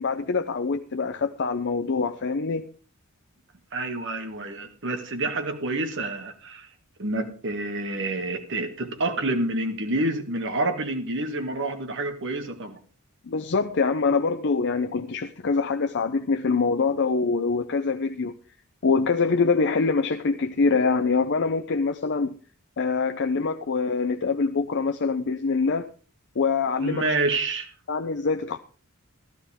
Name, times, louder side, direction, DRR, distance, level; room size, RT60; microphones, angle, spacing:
voice 1, 0.0-2.7 13.2-18.3 18.8-22.4 22.8-25.9 26.4-27.1 27.9-28.6, left 4 dB, 55° left, 0.6 m, -24 dB
voice 2, 3.7-6.7 7.0-12.8 26.8-27.7, right 2 dB, 55° right, 1.9 m, -28 dB
14.0 x 12.5 x 3.6 m
head